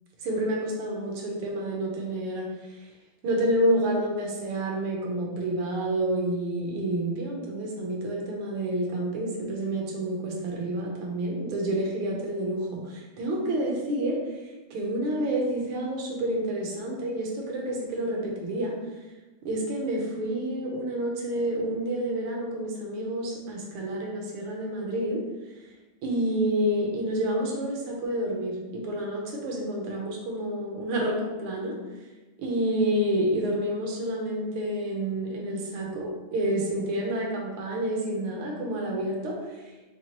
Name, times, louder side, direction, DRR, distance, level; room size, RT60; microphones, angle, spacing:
voice 1, 0.2-2.5 3.2-14.2 14.7-18.7 19.4-25.2 26.0-31.8 32.4-39.6, right 1 dB, 80° right, -1 dB, 1.7 m, -29 dB
4.5 x 2.9 x 2.9 m, 1.1 s
omnidirectional pair, 2.4 m